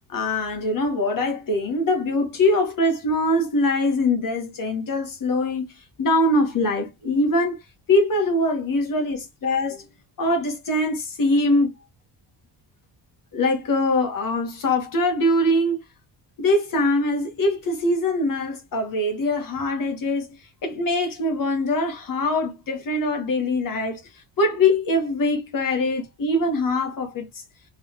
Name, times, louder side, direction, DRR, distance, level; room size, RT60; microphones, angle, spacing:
voice 1, 0.1-5.7 6.0-7.6 7.9-9.8 10.2-11.7 13.3-15.8 16.4-20.3 20.6-24.0 24.4-27.4, left 1 dB, 50° left, 1.5 m, -23 dB
4.0 x 3.6 x 3.0 m
cardioid pair, 145°, 42 cm